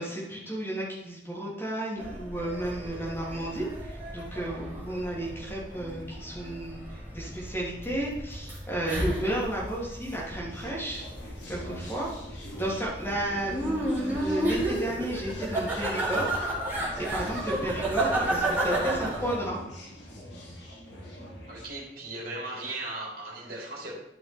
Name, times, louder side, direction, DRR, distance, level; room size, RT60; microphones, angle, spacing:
voice 1, 0.0-6.8 7.1-11.0 11.5-12.1 12.5-16.4 16.7-19.6, right 1 dB, 15° left, -5 dB, 2.8 m, -33 dB
sound 1, 2.0-19.4, right 1 dB, 10° right, 2.7 m, -32 dB
sound 2, 10.4-21.6, equal, 80° left, 2.4 m, -43 dB
voice 2, 21.5-23.9, right 2 dB, 50° right, -3 dB, 3.3 m, -37 dB
12.0 x 5.6 x 4.5 m, 0.82 s
head